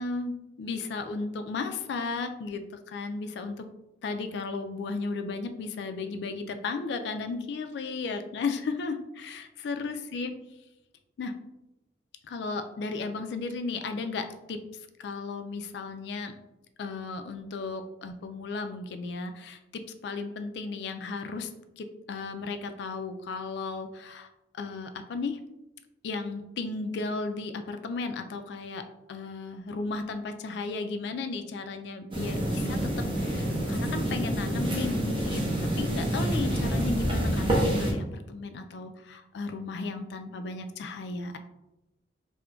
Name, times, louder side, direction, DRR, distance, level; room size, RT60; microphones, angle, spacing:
voice 1, 0.0-3.7 4.0-10.3 11.2-11.3 12.3-14.6 15.0-16.3 16.8-21.5 21.8-24.3 24.5-25.4 26.0-41.4, left 4 dB, 65° left, 7 dB, 0.3 m, -35 dB
sound 1, 32.1-37.9, right 1 dB, 25° right, 0.5 m, -27 dB
2.3 x 2.1 x 3.7 m, 0.93 s
head